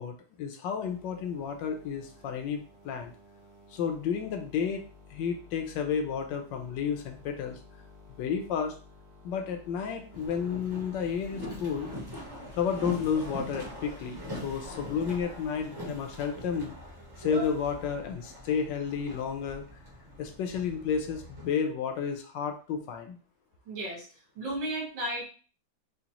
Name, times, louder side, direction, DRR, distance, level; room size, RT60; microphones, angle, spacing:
voice 1, 0.0-3.1 3.7-4.8 5.1-7.6 8.1-8.8 9.2-12.0 12.6-16.8 17.2-19.6 20.2-23.2, left 7 dB, 75° left, 5 dB, 1.3 m, -31 dB
sound 1, 0.8-17.8, left 3 dB, 70° right, 1.7 m, -54 dB
Boat Water vehicle, 10.1-21.5, left 1 dB, 20° right, 0.7 m, -42 dB
voice 2, 23.7-24.1 24.4-25.3, right 1 dB, 85° right, -3 dB, 2.1 m, -33 dB
5.0 x 2.1 x 2.9 m, 0.38 s
omnidirectional pair, 2.0 m